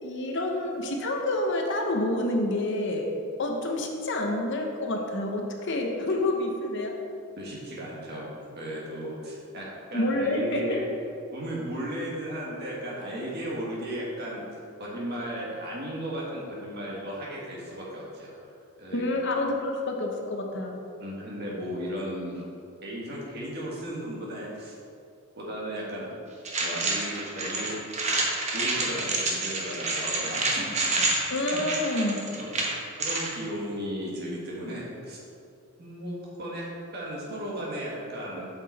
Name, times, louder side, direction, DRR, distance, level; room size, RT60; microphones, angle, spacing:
voice 1, 0.0-3.1 3.4-6.9 9.9-10.8 18.9-20.8 31.3-32.2, left 1 dB, 55° left, 2 dB, 0.8 m, -28 dB
voice 2, 7.4-8.3 8.5-9.7 9.9-10.8 11.3-18.3 18.8-19.1 21.0-22.4 22.8-24.7 25.3-26.1 26.6-27.9 28.5-30.5 31.5-31.6 32.4-32.5 33.0-35.2 35.8-36.7 36.9-38.5, equal, 45° right, -4 dB, 1.8 m, -35 dB
sound 1, 26.4-33.3, right 2 dB, 30° right, 1.0 m, -28 dB
8.0 x 5.9 x 4.1 m, 2.5 s
head